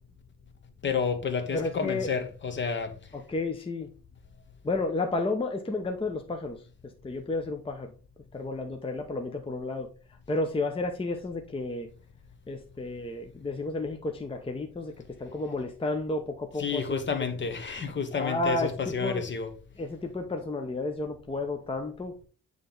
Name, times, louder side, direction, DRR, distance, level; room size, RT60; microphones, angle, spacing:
voice 1, 0.8-2.9 16.6-19.5, left 5 dB, 35° left, 1.1 m, -30 dB
voice 2, 1.5-2.1 3.3-3.9 4.6-6.6 7.0-7.9 8.3-9.9 10.3-11.9 12.5-14.9 15.2-17.0 18.1-18.7 19.0-19.2 19.8-22.1, left 2 dB, 15° left, 0.8 m, -31 dB
8.9 x 3.3 x 3.9 m
cardioid pair, 105°, 32 cm